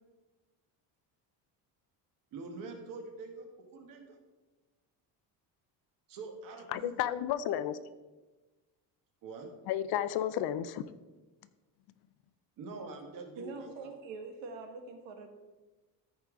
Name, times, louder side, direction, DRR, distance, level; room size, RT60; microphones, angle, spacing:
voice 1, 2.3-4.2 6.1-7.1 9.2-9.5 12.6-13.9, right 3 dB, 50° right, 4 dB, 1.4 m, -45 dB
voice 2, 6.7-7.8 9.7-10.8, left 11 dB, 60° left, 14 dB, 0.5 m, -32 dB
voice 3, 13.4-15.3, right 4 dB, 90° right, 4 dB, 1.6 m, -44 dB
13.5 x 5.1 x 3.7 m, 1.2 s
cardioid pair, 180°, 43 cm